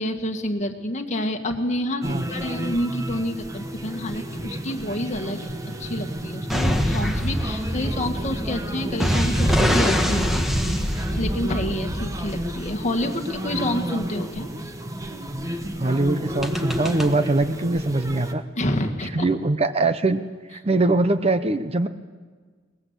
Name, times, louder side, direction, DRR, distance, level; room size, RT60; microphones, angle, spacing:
voice 1, 0.0-5.5 5.8-10.5 10.8-14.5 18.6-19.3, left 1 dB, 40° left, 4 dB, 1.8 m, -28 dB
sound 1, 2.0-18.3, right 1 dB, 20° right, 1.2 m, -32 dB
sound 2, 6.5-12.9 16.4-17.1, equal, ahead, 1.5 m, -24 dB
voice 2, 15.8-18.4 19.1-20.2 20.5-21.9, right 2 dB, 35° right, 11 dB, 0.7 m, -22 dB
22.0 x 20.0 x 8.1 m, 1.5 s
head